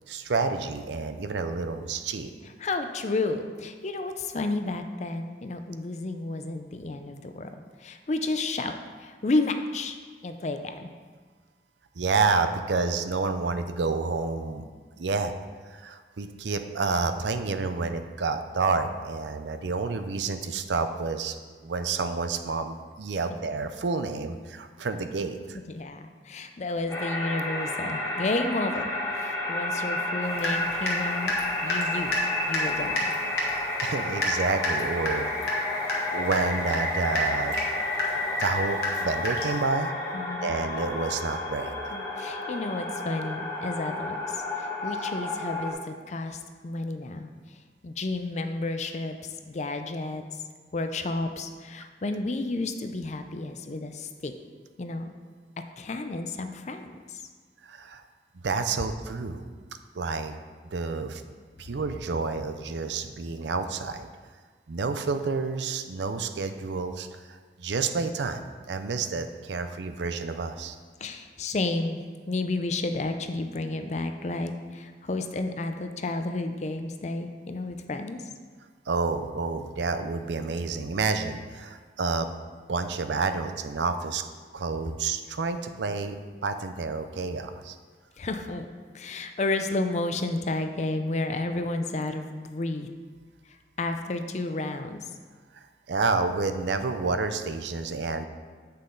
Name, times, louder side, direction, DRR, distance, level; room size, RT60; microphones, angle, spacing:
voice 1, 0.1-2.3 12.0-14.6 15.0-15.3 15.7-21.3 21.6-25.6 33.4-35.3 36.1-37.5 38.4-39.9 40.4-41.7 57.6-58.0 58.4-59.4 60.0-60.3 60.7-61.2 61.6-64.1 64.7-68.4 68.7-70.7 78.9-82.3 82.7-84.2 84.5-86.2 86.4-87.8 95.9-98.2, right 4 dB, 85° right, 8 dB, 0.5 m, -29 dB
voice 2, 2.6-7.5 7.8-10.0 10.2-10.9 25.7-28.9 29.5-31.3 31.6-32.1 32.5-33.1 40.1-40.5 41.9-47.3 47.8-49.2 49.5-50.2 50.7-54.3 54.8-55.1 55.8-57.2 71.0-78.2 88.2-88.7 88.9-92.9 93.8-95.0, left 2 dB, 40° left, 7 dB, 0.5 m, -31 dB
sound 1, 26.9-45.7, left 1 dB, 20° left, 1.4 m, -31 dB
Water tap faucet / Drip, 30.4-31.0 31.3-39.6, left 1 dB, 60° left, 1.4 m, -30 dB
8.4 x 5.6 x 3.9 m, 1.5 s
head